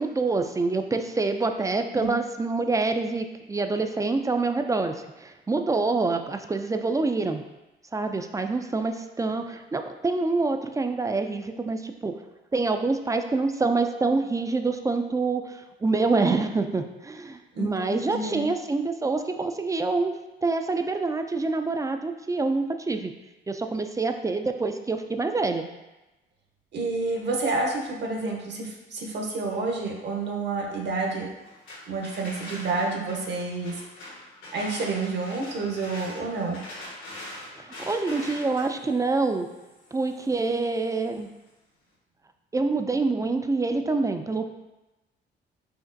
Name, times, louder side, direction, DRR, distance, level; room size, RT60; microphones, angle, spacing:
voice 1, 0.0-7.4 7.9-12.1 12.5-23.1 23.5-25.7 37.5-39.5 39.9-41.3 42.5-44.6, right 3 dB, 15° right, 6 dB, 0.3 m, -26 dB
voice 2, 17.5-18.5 26.7-31.3 31.9-33.8 34.5-36.6, right 3 dB, 60° right, 0 dB, 1.0 m, -29 dB
sound 1, 31.4-41.2, left 1 dB, 80° left, 1.3 m, -43 dB
5.0 x 2.9 x 2.6 m, 1.0 s
cardioid pair, 90°, 20 cm